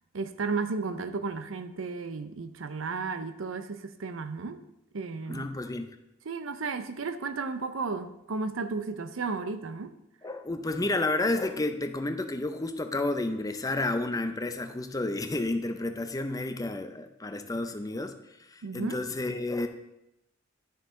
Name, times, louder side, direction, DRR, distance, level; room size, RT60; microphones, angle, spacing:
voice 1, 0.1-4.6 4.9-5.5 6.2-10.0 18.6-19.0, right 4 dB, 85° right, 11 dB, 0.6 m, -33 dB
voice 2, 5.3-6.0 10.2-18.1 18.5-19.7, left 2 dB, 20° left, 8 dB, 0.6 m, -31 dB
11.0 x 6.4 x 3.7 m, 0.86 s
head